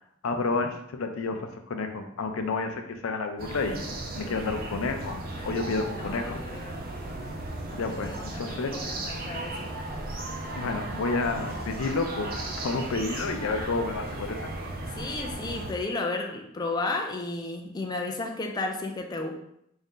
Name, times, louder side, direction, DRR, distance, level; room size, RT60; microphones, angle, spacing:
voice 1, 0.2-6.4 7.7-8.9 10.5-14.5, left 3 dB, 85° left, 6 dB, 0.5 m, -30 dB
sound 1, 3.4-15.7, right 2 dB, 45° right, 0.5 m, -36 dB
voice 2, 6.0-6.8 7.6-9.7 15.0-19.3, left 2 dB, 20° left, 2 dB, 0.4 m, -33 dB
3.6 x 2.7 x 3.6 m, 0.75 s
head